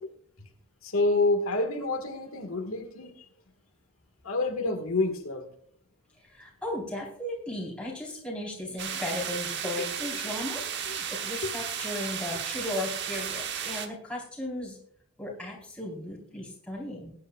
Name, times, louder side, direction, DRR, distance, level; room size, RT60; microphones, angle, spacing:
voice 1, 0.8-3.1 4.2-5.5 11.4-11.5, left 2 dB, 85° left, 4 dB, 1.7 m, -27 dB
voice 2, 6.3-14.8 15.2-17.1, left 1 dB, 5° left, -4 dB, 3.9 m, -36 dB
sound 1, 8.8-13.9, right 8 dB, 55° right, 1.1 m, -34 dB
20.0 x 9.7 x 2.4 m, 0.63 s
head